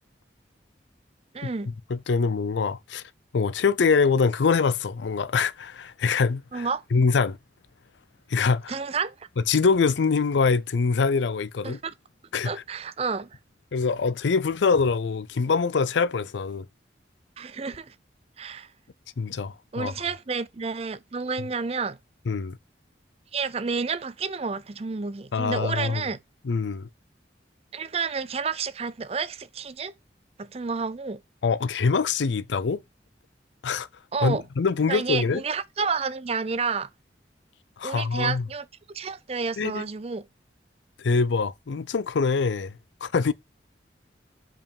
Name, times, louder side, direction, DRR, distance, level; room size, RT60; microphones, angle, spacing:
voice 1, 1.3-1.7 6.5-6.8 8.7-9.3 11.6-11.9 12.4-13.3 17.4-17.9 18.4-18.7 19.7-22.0 23.3-26.2 27.7-29.9 30.4-31.2 34.1-34.4 34.9-36.9 37.8-40.2, right 5 dB, 35° right, 0.5 m, -30 dB
voice 2, 1.9-3.0 3.3-7.4 8.3-8.8 9.5-11.8 12.3-12.5 13.7-16.7 19.2-19.9 22.3-22.6 25.3-26.1 26.4-26.9 31.4-32.8 33.6-33.9 34.2-35.4 37.8-38.4 39.6-39.8 41.0-43.3, left 5 dB, 85° left, 0.5 m, -24 dB
5.4 x 4.8 x 5.2 m
head